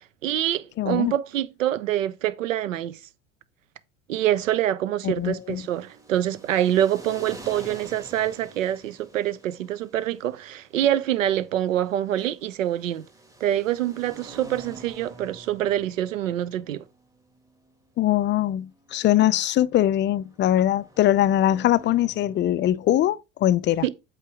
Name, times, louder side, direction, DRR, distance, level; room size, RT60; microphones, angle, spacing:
voice 1, 0.2-3.0 4.1-13.0 13.4-16.8 23.8-23.9, right 12 dB, 85° right, 0.8 m, -25 dB
voice 2, 0.8-1.1 5.0-5.6 18.0-23.8, left 12 dB, 30° left, 0.4 m, -22 dB
sound 1, 5.1-23.0, right 2 dB, 10° right, 1.7 m, -48 dB
8.1 x 3.7 x 4.8 m
hypercardioid pair, 75°, 38 cm